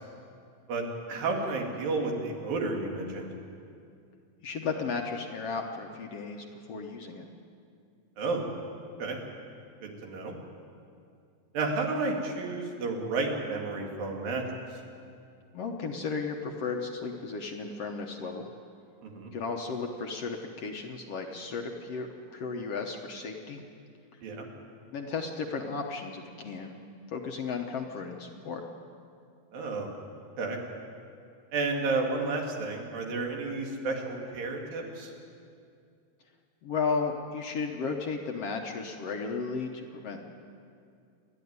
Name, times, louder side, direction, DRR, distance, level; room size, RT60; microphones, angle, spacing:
voice 1, 0.7-3.3 8.2-8.4 9.0-9.2 9.8-10.3 11.5-14.6 19.0-19.3 24.2-24.5 29.5-29.9 30.4-30.6 31.5-35.1, right 3 dB, 90° right, 1 dB, 4.1 m, -31 dB
voice 2, 4.4-7.3 15.5-18.5 19.3-23.6 24.9-26.8 27.1-28.6 36.6-40.2, left 4 dB, 60° left, 2 dB, 1.8 m, -34 dB
29.0 x 11.5 x 9.6 m, 2.4 s
omnidirectional pair, 3.9 m